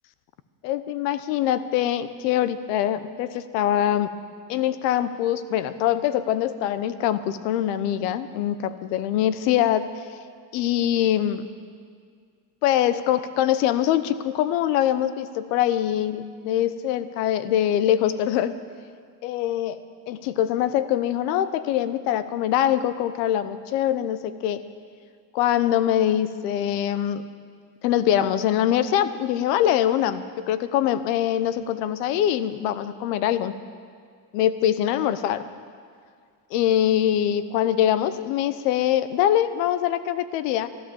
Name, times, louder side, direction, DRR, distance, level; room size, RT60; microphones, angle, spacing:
voice 1, 0.6-4.1 4.5-9.8 10.5-11.4 12.6-18.6 19.2-19.8 20.1-24.6 25.3-27.2 27.8-33.5 34.3-35.4 36.5-40.7, left 11 dB, 85° left, 13 dB, 0.9 m, -23 dB
13.5 x 13.0 x 7.1 m, 2.1 s
supercardioid pair, 105°, 46 cm